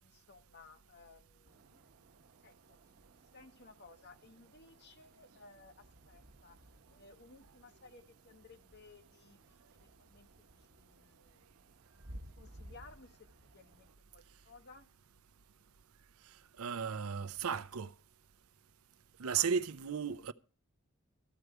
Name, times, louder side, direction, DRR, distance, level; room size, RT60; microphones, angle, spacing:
voice 1, 0.0-2.8 3.3-11.5 12.4-14.9 19.3-19.5, left 3 dB, 50° left, 1.1 m, -59 dB
sound 1, 1.4-13.9, right 1 dB, 55° right, 1.0 m, -58 dB
voice 2, 16.6-17.9 19.2-20.3, right 7 dB, 90° right, 0.6 m, -34 dB
13.5 x 4.8 x 9.0 m
head